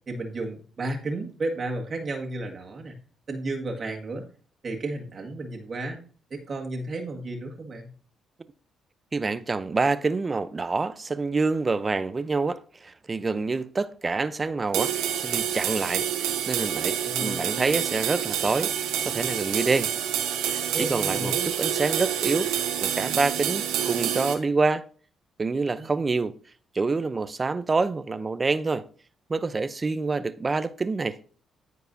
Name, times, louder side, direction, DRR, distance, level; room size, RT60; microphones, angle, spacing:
voice 1, 0.1-3.0 3.3-4.2 4.6-6.0 6.3-7.9 17.0-17.5 20.7-21.5 25.7-25.9, right 2 dB, 45° right, 1.8 m, -33 dB
voice 2, 9.1-18.7 19.1-19.9 20.4-22.5 22.8-24.9 25.4-26.3 26.7-28.9 29.3-31.2, right 3 dB, 30° right, 0.6 m, -27 dB
sound 1, 14.7-24.3, right 10 dB, 90° right, 1.2 m, -28 dB
14.0 x 4.7 x 2.7 m
supercardioid pair, 65°, 0 cm